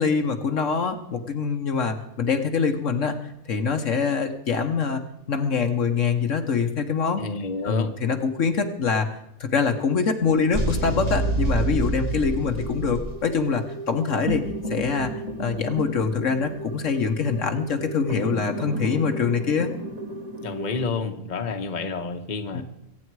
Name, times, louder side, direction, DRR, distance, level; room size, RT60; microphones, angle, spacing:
voice 1, 0.0-3.2 3.5-5.0 5.3-7.2 7.6-14.4 14.7-19.7 22.5-22.6, left 5 dB, 65° left, 6 dB, 1.4 m, -24 dB
voice 2, 7.2-7.9 20.4-22.6, left 4 dB, 35° left, 5 dB, 1.2 m, -29 dB
sound 1, 10.5-20.9, right 2 dB, 30° right, 1.5 m, -30 dB
23.0 x 9.2 x 4.7 m, 0.83 s
omnidirectional pair, 1.4 m